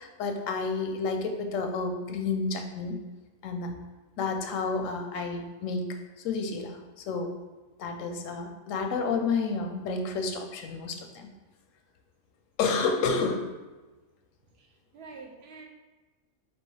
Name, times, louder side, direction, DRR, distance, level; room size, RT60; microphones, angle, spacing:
voice 1, 0.0-3.0 3.4-3.7 4.2-7.3 7.8-11.3 12.6-13.5, left 4 dB, 85° left, 5 dB, 1.0 m, -30 dB
voice 2, 14.5-15.7, right 4 dB, 65° right, 2 dB, 0.8 m, -47 dB
5.2 x 2.9 x 3.2 m, 1.2 s
omnidirectional pair, 1.3 m